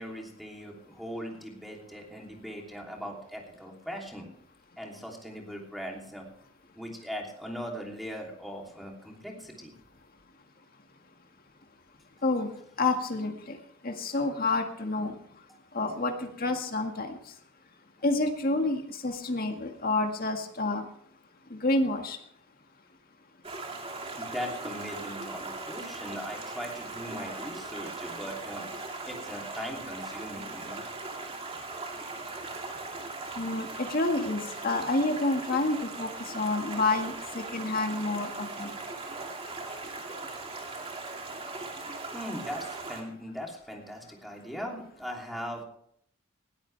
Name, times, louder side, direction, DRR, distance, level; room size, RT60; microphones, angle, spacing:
voice 1, 0.0-4.3 4.8-6.3 6.8-9.7 15.5-15.6 24.2-28.7 29.0-30.8 32.3-32.4 42.1-45.6, equal, ahead, 0 dB, 3.1 m, -40 dB
voice 2, 12.8-13.6 13.8-15.2 15.7-17.2 18.0-20.8 21.5-22.2 33.4-38.7, left 2 dB, 45° left, 4 dB, 1.9 m, -29 dB
Stream, 23.4-43.0, right 3 dB, 30° right, 2.4 m, -39 dB
19.5 x 13.5 x 3.4 m, 0.67 s
head